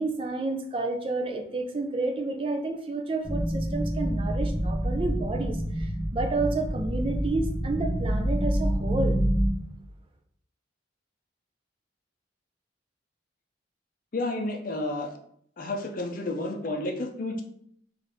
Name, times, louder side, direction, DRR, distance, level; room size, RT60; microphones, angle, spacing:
voice 1, 0.0-9.2, right 2 dB, 30° right, 4 dB, 0.4 m, -30 dB
sound 1, 3.2-9.5, right 1 dB, 5° right, 0.9 m, -27 dB
voice 2, 14.1-15.2 15.6-17.4, left 2 dB, 50° left, 4 dB, 0.5 m, -31 dB
4.0 x 2.6 x 3.4 m, 0.67 s
head